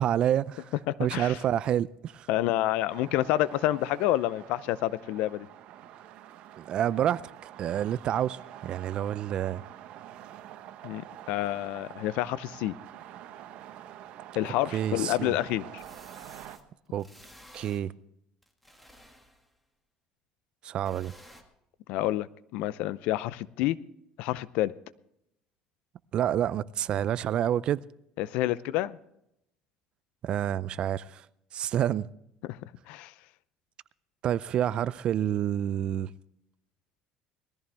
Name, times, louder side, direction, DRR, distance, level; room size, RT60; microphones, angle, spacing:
voice 1, 0.0-0.7 1.0-2.3 6.6-7.2 7.6-9.6 14.7-15.4 16.9-17.1 17.5-17.9 20.6-21.1 26.1-27.8 30.2-31.2 31.5-32.1 34.2-36.1, right 10 dB, 50° right, 0.4 m, -28 dB
voice 2, 0.9-1.4 2.3-5.5 10.8-12.7 14.3-15.8 21.9-23.8 24.2-24.7 28.2-29.0 32.5-32.6 32.9-33.1, left 15 dB, 75° left, 0.6 m, -28 dB
sound 1, 2.9-16.6, right 11 dB, 65° right, 0.9 m, -47 dB
sound 2, 14.6-14.7 15.8-16.6 17.0-17.8 18.4-19.6 20.8-21.4, equal, 5° left, 1.7 m, -53 dB
19.5 x 14.0 x 3.5 m
cardioid pair, 120°, 2 cm